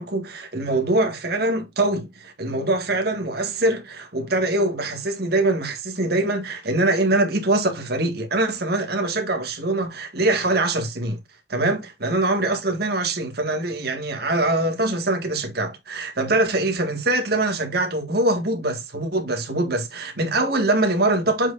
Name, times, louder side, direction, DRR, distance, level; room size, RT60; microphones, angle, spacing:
voice 1, 0.0-11.2 11.5-21.5, right 2 dB, 55° right, 1.9 m, -23 dB
7.5 x 6.2 x 2.6 m
head